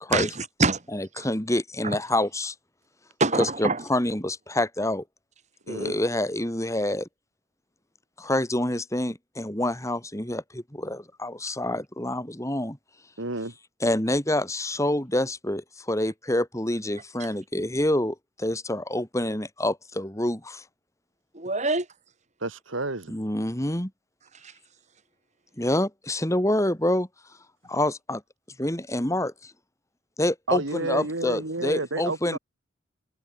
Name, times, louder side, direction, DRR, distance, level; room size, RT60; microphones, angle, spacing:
voice 1, 0.1-0.8 1.2-1.3 1.8-2.0 3.2-3.8 21.3-21.9 24.4-24.5, right 3 dB, 35° right, 4.6 m, -25 dB
voice 2, 0.9-2.5 3.4-5.0 5.7-7.1 8.2-12.8 13.8-20.6 23.1-23.9 25.6-27.1 27.7-28.2 28.6-29.5 30.2-32.4, left 1 dB, 15° left, 3.0 m, -27 dB
voice 3, 5.7-6.0 13.2-13.5 22.4-23.2 30.5-32.4, right 2 dB, 85° right, 2.7 m, -30 dB
head